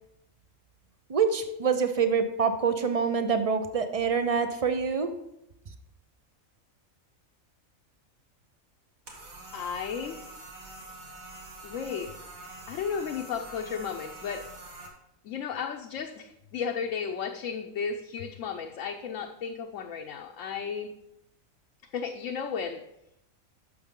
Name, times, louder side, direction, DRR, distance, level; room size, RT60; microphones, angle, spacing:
voice 1, 1.1-5.1, right 5 dB, 45° right, 9 dB, 0.4 m, -26 dB
sound 1, 9.1-14.9, right 2 dB, 75° right, 2.0 m, -45 dB
voice 2, 9.5-10.2 11.6-12.1 12.7-14.5 15.2-20.9 21.9-22.8, left 6 dB, 70° left, 3 dB, 1.0 m, -34 dB
12.0 x 6.5 x 3.7 m, 0.82 s
omnidirectional pair, 1.4 m